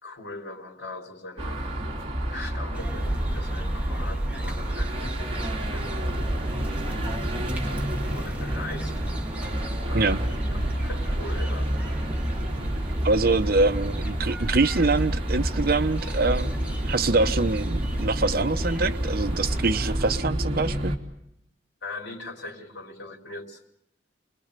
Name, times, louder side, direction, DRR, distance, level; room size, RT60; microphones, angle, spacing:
voice 1, 0.0-1.6 2.3-6.0 7.0-7.7 8.1-8.9 9.9-11.7 21.8-23.6, left 2 dB, 80° left, 4.0 m, -41 dB
sound 1, 1.4-21.0, right 1 dB, 35° right, 3.4 m, -29 dB
sound 2, 2.7-20.2, right 1 dB, 10° right, 2.5 m, -33 dB
voice 2, 13.0-16.5 16.8-20.9, right 3 dB, 55° right, 0.9 m, -24 dB
29.5 x 22.0 x 6.8 m
head